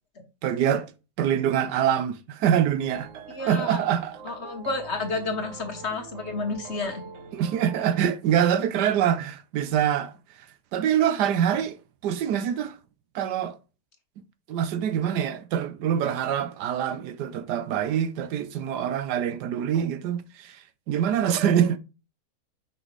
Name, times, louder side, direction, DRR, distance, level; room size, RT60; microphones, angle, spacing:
voice 1, 0.4-0.9 1.2-4.2 7.3-10.2 10.7-11.8 12.0-12.8 13.1-13.6 14.5-21.8, right 9 dB, 85° right, 1.3 m, -25 dB
sound 1, 2.8-8.0, right 5 dB, 55° right, 1.1 m, -43 dB
voice 2, 3.3-3.8 4.2-7.0, left 3 dB, 45° left, 1.4 m, -31 dB
5.8 x 5.4 x 3.1 m
omnidirectional pair, 1.8 m